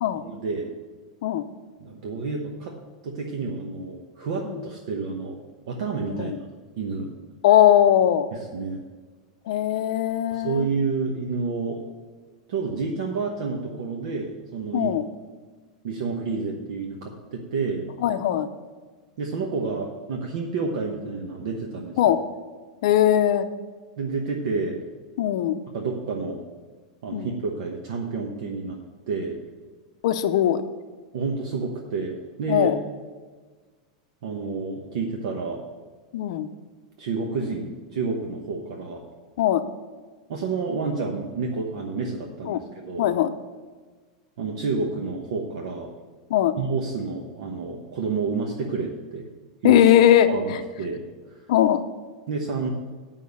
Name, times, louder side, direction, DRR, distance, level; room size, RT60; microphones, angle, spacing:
voice 1, 0.2-0.7 1.8-2.7 3.0-5.4 5.7-6.4 6.8-7.1 8.3-8.8 10.3-11.8 12.5-14.9 15.8-17.9 19.2-22.1 24.0-24.8 25.7-26.4 27.0-28.8 29.1-29.4 31.1-32.7 34.2-35.6 37.0-39.1 40.3-43.1 44.4-45.9 46.6-49.3 49.6-49.8 50.3-51.4 52.3-52.7, right 4 dB, 60° right, 1 dB, 1.0 m, -29 dB
voice 2, 7.4-8.3 9.5-10.7 14.7-15.0 18.0-18.5 22.0-22.2 22.8-23.5 25.2-25.6 27.1-27.3 30.0-30.6 32.5-32.8 36.1-36.5 39.4-39.6 42.5-42.6 43.0-43.3 46.3-46.5 49.6-50.3 51.5-51.8, left 11 dB, 55° left, 10 dB, 0.6 m, -19 dB
8.3 x 5.6 x 6.9 m, 1.4 s
supercardioid pair, 175°, 4 cm